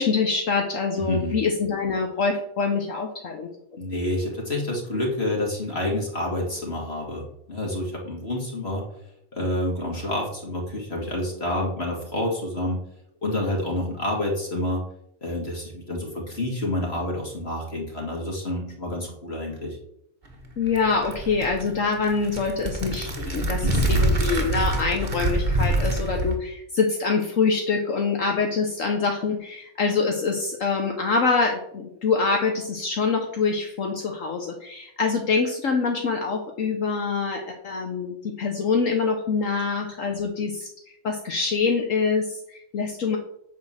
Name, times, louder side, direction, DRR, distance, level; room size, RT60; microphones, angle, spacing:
voice 1, 0.0-3.5 20.6-40.7 41.0-43.2, left 4 dB, 65° left, 3 dB, 1.4 m, -25 dB
voice 2, 1.0-1.4 3.8-8.9 9.3-12.8 13.2-14.8 15.2-19.8 23.6-24.0, left 1 dB, 45° left, -1 dB, 2.4 m, -28 dB
sound 1, 20.3-26.3, right 1 dB, 35° right, 1.6 m, -25 dB
9.7 x 4.4 x 7.5 m, 0.77 s
omnidirectional pair, 1.5 m